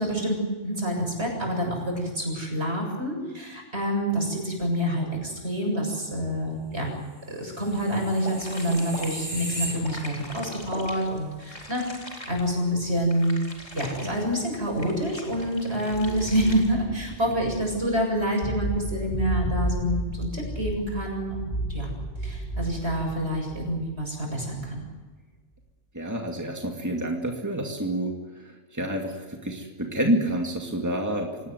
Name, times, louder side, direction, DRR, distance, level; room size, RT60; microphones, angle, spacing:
voice 1, 0.0-7.0 7.3-11.9 12.3-13.4 13.7-21.9 22.2-24.8, equal, 60° right, 1 dB, 7.9 m, -27 dB
sound 1, 7.4-10.3 10.7-10.9, right 1 dB, 90° left, 7.5 m, -36 dB
sound 2, 8.4-16.7, left 1 dB, 30° left, 4.0 m, -44 dB
sound 3, 15.9-23.9 24.5-24.9, right 1 dB, 45° left, 7.0 m, -32 dB
voice 2, 25.9-31.5, right 1 dB, 15° right, 1 dB, 2.4 m, -28 dB
26.0 x 18.5 x 9.6 m, 1.3 s
omnidirectional pair, 1.2 m